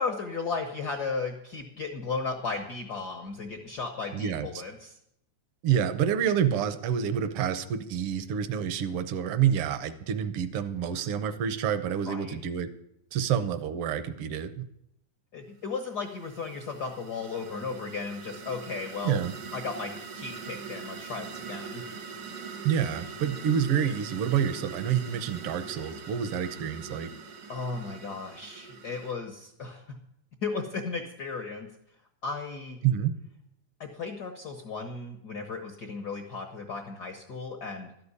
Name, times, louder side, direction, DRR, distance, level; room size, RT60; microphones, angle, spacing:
voice 1, 0.0-5.0 12.1-12.4 15.3-19.2 19.5-21.8 27.5-30.0 30.4-31.7 32.2-32.8 33.8-37.9, left 4 dB, 80° left, 3 dB, 0.9 m, -35 dB
voice 2, 4.1-4.5 5.6-12.7 13.1-14.7 19.0-19.3 22.6-27.1 32.8-33.1, right 8 dB, 70° right, 11 dB, 1.4 m, -28 dB
sound 1, 15.8-29.1, right 5 dB, 85° right, 3.6 m, -42 dB
13.0 x 6.8 x 9.7 m, 0.77 s
omnidirectional pair, 3.5 m